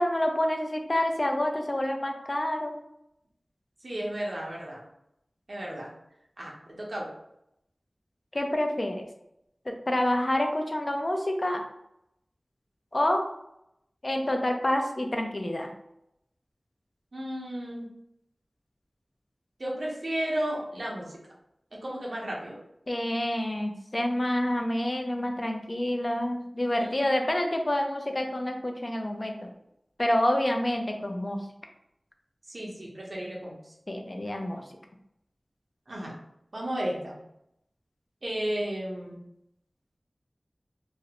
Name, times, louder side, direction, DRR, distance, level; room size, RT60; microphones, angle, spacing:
voice 1, 0.0-2.7 8.3-9.0 9.7-11.6 12.9-13.2 14.0-15.7 22.9-29.5 30.0-31.4 33.9-34.6, left 1 dB, 40° left, 3 dB, 0.4 m, -28 dB
voice 2, 3.8-4.8 5.5-5.9 6.4-7.1 17.1-17.9 19.6-21.2 21.7-22.6 26.8-27.0 32.5-33.7 35.9-36.1 36.5-37.2 38.2-39.2, right 1 dB, 70° right, -4 dB, 0.7 m, -33 dB
2.4 x 2.0 x 2.8 m, 0.82 s
wide cardioid pair, 45°, 0 cm